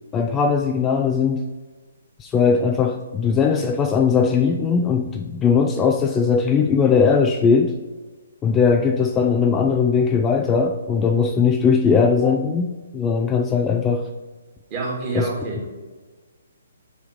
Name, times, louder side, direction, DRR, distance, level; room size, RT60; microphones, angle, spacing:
voice 1, 0.1-1.5 2.2-7.8 8.4-14.1 15.1-15.3, left 5 dB, 15° left, 4 dB, 0.4 m, -19 dB
voice 2, 14.7-15.7, right 3 dB, 30° right, -3 dB, 2.5 m, -27 dB
5.4 x 4.8 x 6.3 m, 1.3 s
figure-of-eight pair, 130°, 0 cm